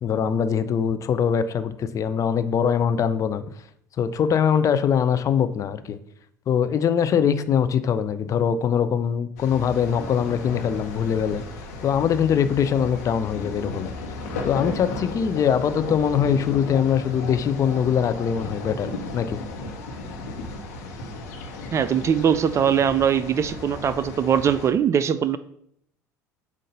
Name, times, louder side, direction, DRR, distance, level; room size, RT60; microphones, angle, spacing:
voice 1, 0.0-3.4 4.0-6.0 6.5-11.4 11.8-13.9 14.4-18.9 19.1-19.4, left 8 dB, 35° left, 11 dB, 0.5 m, -22 dB
sound 1, 9.4-24.7, left 3 dB, 70° left, 1.0 m, -35 dB
sound 2, 9.5-24.1, left 1 dB, 10° left, 1.9 m, -44 dB
voice 2, 21.7-25.4, right 8 dB, 30° right, 14 dB, 0.3 m, -21 dB
7.6 x 2.5 x 5.2 m, 0.71 s
figure-of-eight pair, 65°, 9 cm